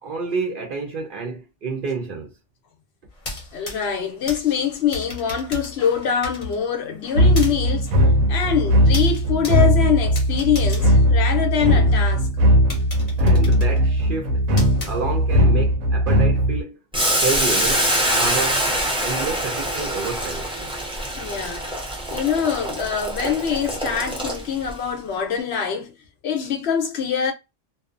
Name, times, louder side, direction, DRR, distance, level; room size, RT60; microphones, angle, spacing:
voice 1, 0.0-2.3 13.2-14.4 14.8-16.8 17.2-18.7 19.0-21.2, right 4 dB, 55° right, 0.6 m, -29 dB
sound 1, 3.1-11.9 12.3-12.4 12.7-15.5, left 2 dB, 35° left, 0.8 m, -37 dB
voice 2, 3.5-7.9 8.3-12.3 21.2-21.7 22.1-25.9 26.2-27.3, left 7 dB, 65° left, 0.8 m, -24 dB
sound 2, 7.2-16.6, equal, 80° right, 1.0 m, -18 dB
Boiling, 16.9-24.7, equal, 5° right, 0.4 m, -24 dB
2.6 x 2.1 x 2.4 m
omnidirectional pair, 1.3 m